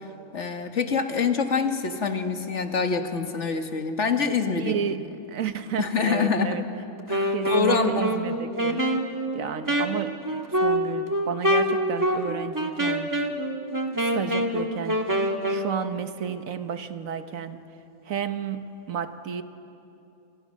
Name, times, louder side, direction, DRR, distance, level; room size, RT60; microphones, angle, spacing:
voice 1, 0.3-4.7 5.8-6.6 7.1-8.4, left 5 dB, 60° left, 6 dB, 1.8 m, -26 dB
voice 2, 4.6-6.6 7.3-8.8 9.3-10.2 10.5-13.1 14.0-17.6 18.0-19.4, right 7 dB, 80° right, 10 dB, 1.4 m, -32 dB
Wind instrument woodwind instrument, 7.0-15.7, equal, 15° right, 1.4 m, -26 dB
28.5 x 26.5 x 6.5 m, 2.8 s
omnidirectional pair, 1.4 m